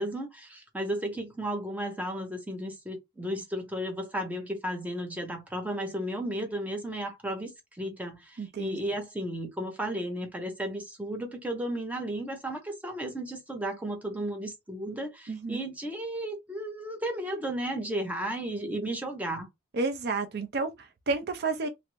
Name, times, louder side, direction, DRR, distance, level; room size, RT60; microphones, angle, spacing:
voice 1, 0.0-19.5, right 1 dB, 10° right, 0.8 m, -34 dB
voice 2, 8.4-8.8 15.3-15.7 19.7-21.7, right 3 dB, 55° right, 0.5 m, -31 dB
3.1 x 2.5 x 3.0 m
head